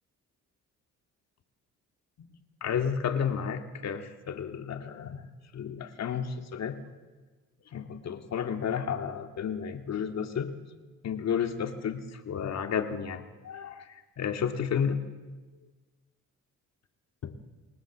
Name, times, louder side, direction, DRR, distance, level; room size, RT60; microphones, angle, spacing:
voice 1, 2.6-5.3 5.5-6.8 7.7-10.6 11.0-15.0 17.2-17.3, left 7 dB, 60° left, 6 dB, 2.2 m, -32 dB
28.5 x 19.0 x 7.4 m, 1.3 s
cardioid pair, 90°, 30 cm